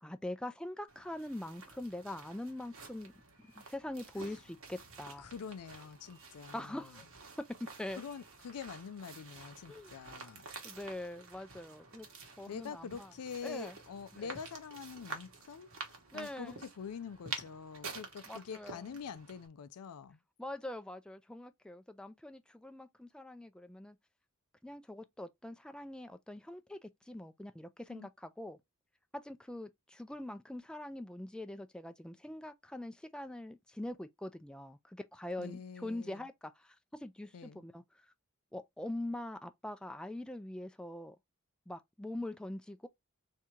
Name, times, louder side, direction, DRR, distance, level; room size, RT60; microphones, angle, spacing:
voice 1, 0.0-3.1 3.4-5.3 6.5-7.0 7.6-8.0 9.7-9.9 10.6-12.1 12.4-13.1 13.4-13.8 14.1-14.3 16.1-16.7 18.3-19.0 20.4-24.0 24.6-28.6 29.1-38.1 38.5-41.2 41.7-42.9, left 1 dB, 5° left, 0.4 m, -43 dB
sound 1, 0.9-19.5, right 4 dB, 65° right, 1.2 m, -50 dB
voice 2, 5.2-7.0 8.0-10.5 12.5-20.2 27.9-28.1 35.4-36.3 37.3-37.6, left 6 dB, 85° left, 0.4 m, -46 dB
3.6 x 2.8 x 4.4 m
head